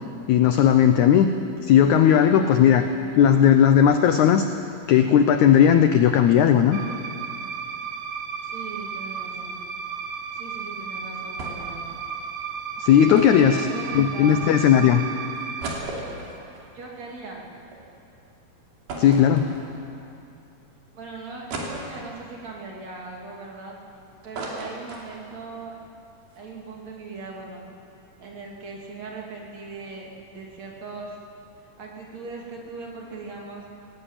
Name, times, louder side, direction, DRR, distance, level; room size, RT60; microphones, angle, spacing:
voice 1, 0.3-1.3 1.6-2.8 3.2-4.5 4.9-6.8 12.8-13.7 13.9-15.0 19.0-19.5, left 9 dB, 80° left, 8 dB, 1.7 m, -16 dB
voice 2, 2.0-3.3 8.4-9.6 10.3-11.9 13.4-14.5 16.7-17.5 20.9-23.8 24.2-25.8 26.3-27.6 28.2-31.2 31.8-33.6, right 3 dB, 50° right, -2 dB, 3.6 m, -39 dB
sound 1, 6.7-15.7, right 6 dB, 65° right, 2.6 m, -34 dB
sound 2, 11.4-11.8 12.1-12.2 13.1-14.4 14.9-15.0 15.4-17.8 18.2-18.3 18.9-20.0 20.5-20.6 21.5-22.3 22.9-23.9 24.1-25.5 25.8-25.9 26.2-26.4, right 2 dB, 85° right, 4.8 m, -36 dB
20.0 x 18.0 x 8.9 m, 2.7 s
omnidirectional pair, 4.3 m